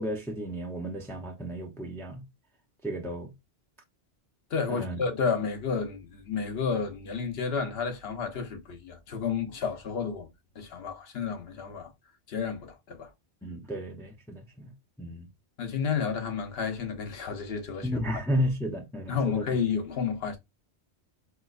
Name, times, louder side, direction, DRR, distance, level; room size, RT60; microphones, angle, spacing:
voice 1, 0.0-2.2 2.8-3.3 4.7-5.0 13.4-14.7 15.0-15.3 17.8-19.5, equal, 5° left, 0.4 m, -33 dB
voice 2, 4.5-11.9 12.3-13.1 15.6-17.9 18.1-18.2 19.1-20.4, left 6 dB, 70° left, 1.0 m, -31 dB
4.3 x 2.1 x 2.4 m
omnidirectional pair, 1.1 m